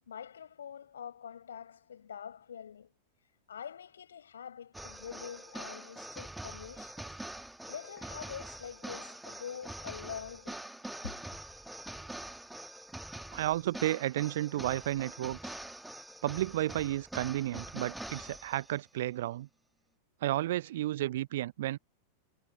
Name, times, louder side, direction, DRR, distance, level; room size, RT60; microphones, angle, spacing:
voice 1, 0.1-2.9 3.5-7.2 7.7-10.6 11.0-11.2, left 8 dB, 65° left, 4.8 m, -45 dB
sound 1, 4.7-18.8, right 1 dB, 5° right, 1.6 m, -45 dB
voice 2, 13.3-15.6 16.2-19.5 20.2-21.8, right 14 dB, 55° right, 0.4 m, -32 dB
figure-of-eight pair, 90°, 0 cm